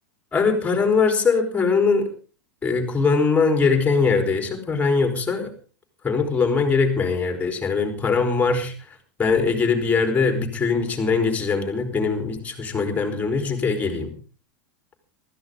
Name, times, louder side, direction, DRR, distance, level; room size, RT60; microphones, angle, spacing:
voice 1, 0.3-2.1 2.6-5.5 6.0-14.1, left 4 dB, 15° left, 4 dB, 3.9 m, -21 dB
19.5 x 14.0 x 3.8 m, 0.38 s
hypercardioid pair, 115°, 10 cm